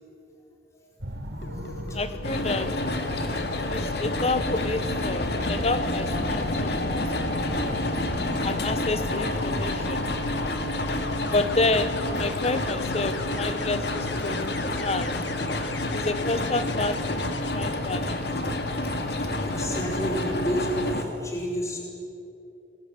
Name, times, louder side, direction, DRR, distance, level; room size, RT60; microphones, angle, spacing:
voice 1, 0.7-1.2 1.5-2.0 3.4-3.5 6.1-6.2 7.7-7.8 19.1-21.8, equal, 15° left, -2 dB, 4.6 m, -32 dB
sound 1, 1.0-15.5, right 1 dB, 75° right, 3.5 m, -39 dB
sound 2, 1.4-17.5 19.4-19.7, left 3 dB, 85° left, 1.5 m, -38 dB
voice 2, 1.9-2.8 3.7-7.8 8.4-10.1 11.3-15.2 15.9-17.2 17.5-18.2, left 2 dB, 35° left, 11 dB, 1.1 m, -29 dB
sound 3, 2.2-21.0, left 1 dB, 65° left, 2.3 m, -29 dB
28.5 x 21.0 x 7.8 m, 2.8 s
head